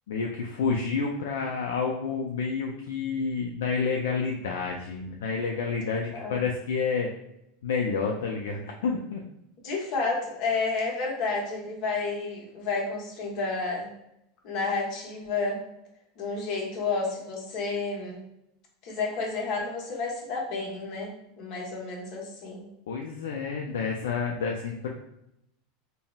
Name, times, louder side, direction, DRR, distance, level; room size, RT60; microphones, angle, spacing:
voice 1, 0.1-7.1 7.6-9.2 22.9-24.9, left 5 dB, 90° left, 0 dB, 0.3 m, -29 dB
voice 2, 9.6-13.9 14.4-15.6 16.2-18.2 18.8-22.7, left 4 dB, 50° left, -2 dB, 0.9 m, -31 dB
3.8 x 2.0 x 2.2 m, 0.81 s
supercardioid pair, 130°, 0 cm